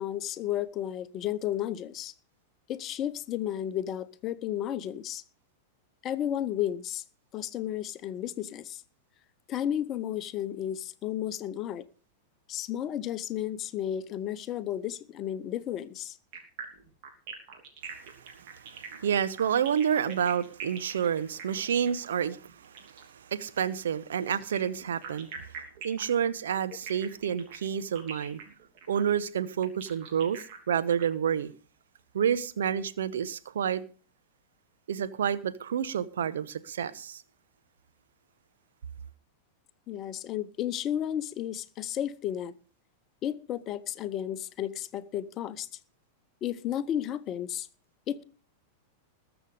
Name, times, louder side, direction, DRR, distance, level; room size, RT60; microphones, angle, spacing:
voice 1, 0.0-2.1 2.7-5.2 6.0-7.0 7.3-8.8 9.5-11.9 12.5-16.2 22.2-22.3 39.9-42.5 43.2-45.7 46.4-47.7 48.1-48.2, left 11 dB, 35° left, 0.8 m, -33 dB
sound 1, 16.3-23.1 24.3-31.0, right 6 dB, 45° right, 3.1 m, -44 dB
voice 2, 17.9-28.4 28.9-31.5 32.1-33.8 34.9-37.2, right 8 dB, 65° right, 0.9 m, -29 dB
20.5 x 7.1 x 5.0 m
figure-of-eight pair, 95°, 0 cm